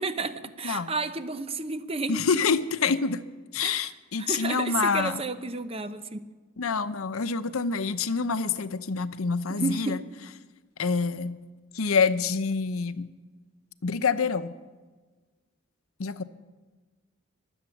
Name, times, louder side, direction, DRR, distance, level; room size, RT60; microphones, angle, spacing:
voice 1, 0.0-2.2 3.6-3.9 4.2-6.2 9.5-9.9, right 3 dB, 30° right, 12 dB, 0.8 m, -31 dB
voice 2, 0.6-0.9 2.1-3.2 3.5-5.2 6.6-10.0 10.8-11.4 11.7-13.1 13.8-14.5 16.0-16.2, left 5 dB, 85° left, 13 dB, 0.8 m, -27 dB
22.5 x 8.0 x 7.2 m, 1.3 s
head